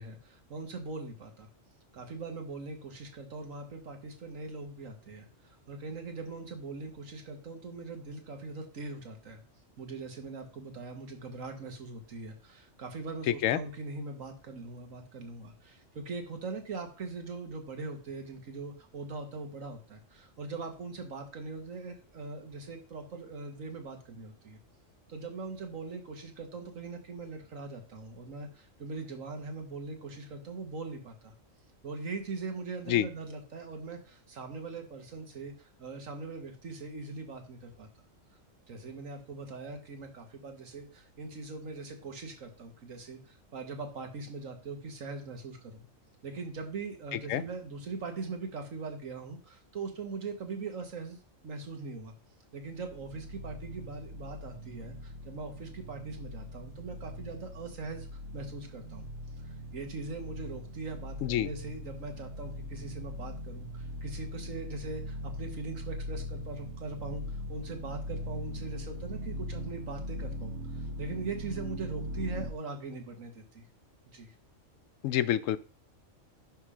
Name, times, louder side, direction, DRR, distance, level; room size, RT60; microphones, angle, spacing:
voice 1, 0.0-1.5 1.9-9.4 9.8-24.6 25.1-31.3 31.8-37.9 38.7-45.8 46.2-51.2 51.4-52.1 52.5-59.1 59.4-73.7 74.1-74.3, right 3 dB, 85° right, 5 dB, 1.9 m, -41 dB
voice 2, 13.3-13.6 32.9-33.1 47.3-47.4 61.2-61.5 75.0-75.6, left 11 dB, 80° left, 16 dB, 1.0 m, -27 dB
sound 1, 52.8-72.5, left 1 dB, 65° right, 1.1 m, -40 dB
11.0 x 3.8 x 5.0 m, 0.36 s
omnidirectional pair, 1.3 m